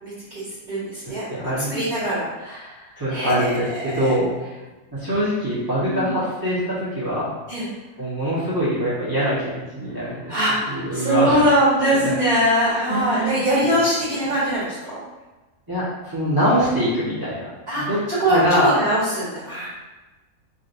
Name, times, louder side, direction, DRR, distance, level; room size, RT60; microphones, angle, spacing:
voice 1, 0.0-1.2 1.7-4.2 5.9-6.0 7.5-7.6 10.0-15.0 17.7-17.8 18.2-19.7, equal, 30° right, -12 dB, 1.5 m, -22 dB
voice 2, 1.3-1.7 3.0-4.3 4.9-7.3 8.0-11.4 11.8-12.1 12.9-13.8 15.7-17.5 17.8-18.0 18.3-18.7, equal, 15° right, -11 dB, 1.2 m, -23 dB
4.9 x 3.1 x 2.6 m, 1.2 s
omnidirectional pair, 1.6 m